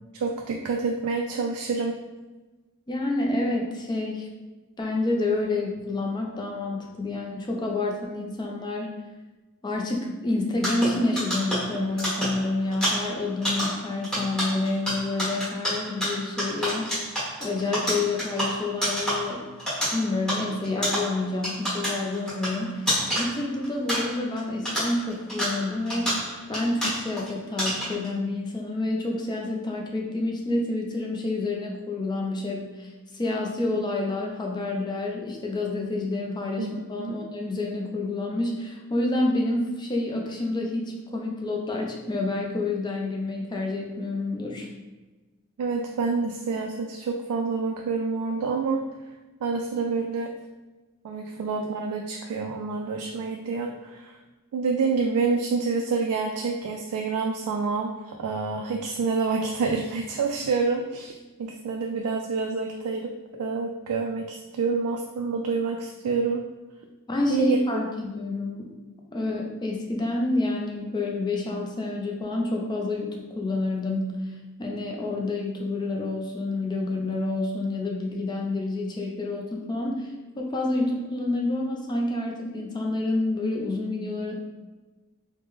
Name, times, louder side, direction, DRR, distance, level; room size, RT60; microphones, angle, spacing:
voice 1, 0.1-1.9 36.6-36.7 37.0-37.1 45.6-48.8 49.4-50.3 51.0-54.2 54.5-63.1 63.4-66.4 67.3-67.9, right 4 dB, 90° right, 2 dB, 0.3 m, -27 dB
voice 2, 2.9-4.3 4.8-9.0 9.6-17.1 17.4-19.4 19.9-26.1 26.5-44.7 67.1-68.7 69.1-74.1 74.6-84.4, left 2 dB, 20° left, -1 dB, 0.4 m, -28 dB
sound 1, 10.6-24.4 24.7-27.3 27.6-28.1, equal, 5° left, 1.3 m, -29 dB
3.1 x 2.1 x 3.3 m, 1.2 s
head